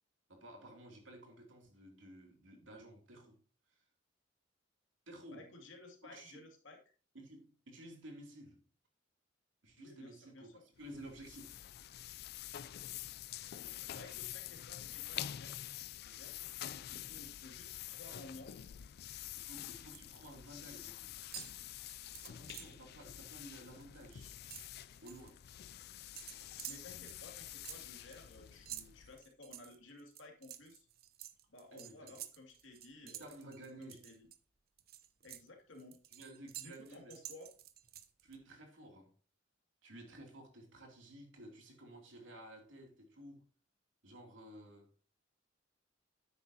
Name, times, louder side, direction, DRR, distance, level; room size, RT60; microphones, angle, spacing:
voice 1, 0.3-3.4 3.7-3.8 5.1-5.5 6.0-6.5 7.1-8.6 9.6-11.6 19.4-21.1 22.3-24.3 25.0-25.4 31.7-32.1 33.0-34.1 36.1-37.2 38.2-39.1 39.8-43.5 44.0-44.9, right 1 dB, 85° right, 2.9 m, -53 dB
voice 2, 5.3-6.8 9.8-10.6 13.9-15.6 16.0-16.4 16.9-18.5 26.7-30.9 31.5-33.4 33.8-34.3 35.2-36.0 36.6-37.5, left 2 dB, 90° left, 2.5 m, -55 dB
sound 1, 10.8-29.2, left 12 dB, 55° left, 0.3 m, -47 dB
sound 2, 19.5-20.2 20.4-20.9 21.2-22.8 23.2-23.4 23.7-25.3 26.2-34.4 34.8-38.4, right 12 dB, 55° right, 0.8 m, -51 dB
10.0 x 8.6 x 2.8 m
head